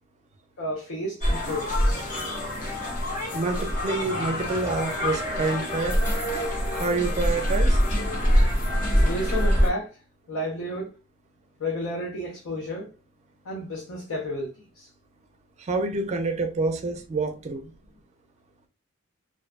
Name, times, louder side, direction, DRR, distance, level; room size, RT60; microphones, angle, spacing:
voice 1, 0.6-2.1 9.0-10.0 10.3-10.9 11.6-12.9 13.4-14.9, left 1 dB, 85° left, 0.7 m, -32 dB
sound 1, 1.2-9.7, equal, 40° left, 0.7 m, -24 dB
voice 2, 3.3-6.0 6.7-7.8 15.6-17.7, right 3 dB, 35° right, 0.4 m, -27 dB
2.5 x 2.2 x 2.4 m
head